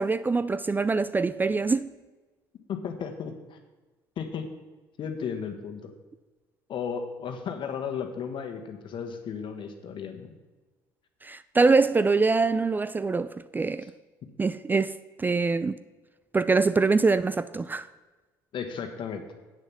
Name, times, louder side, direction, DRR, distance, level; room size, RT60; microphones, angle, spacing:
voice 1, 0.0-1.9 11.2-13.9 14.4-14.9 15.2-15.8 16.3-17.9, right 4 dB, 20° right, 0.4 m, -24 dB
voice 2, 2.7-3.6 4.2-4.5 5.0-5.9 6.7-10.3 18.5-19.2, left 7 dB, 50° left, 1.5 m, -34 dB
8.3 x 6.8 x 7.2 m
hypercardioid pair, 65°, 10 cm